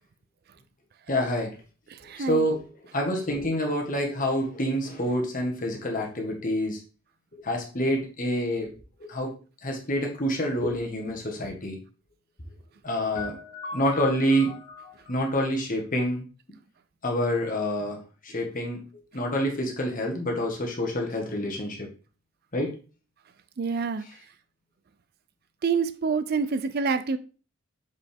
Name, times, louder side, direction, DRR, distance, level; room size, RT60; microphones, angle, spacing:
voice 1, 1.1-1.6 2.2-6.8 7.4-8.7 9.0-9.3 9.6-11.8 12.8-16.3 17.0-21.9 22.5-22.7 24.0-24.1, equal, 35° left, 1 dB, 1.5 m, -27 dB
voice 2, 2.0-2.4 23.6-24.0 25.6-27.2, right 5 dB, 45° right, 12 dB, 0.4 m, -26 dB
6.5 x 5.2 x 3.5 m, 0.36 s
head